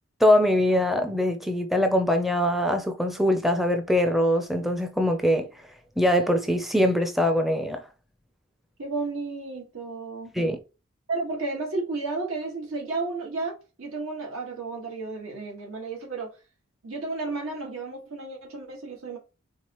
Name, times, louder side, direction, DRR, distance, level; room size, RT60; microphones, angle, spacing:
voice 1, 0.2-5.5 6.0-7.8 10.4-10.6, left 1 dB, ahead, 0.4 m, -22 dB
voice 2, 8.8-10.3 11.1-16.3 16.8-19.2, right 3 dB, 85° right, 1.7 m, -32 dB
4.6 x 3.6 x 3.0 m
head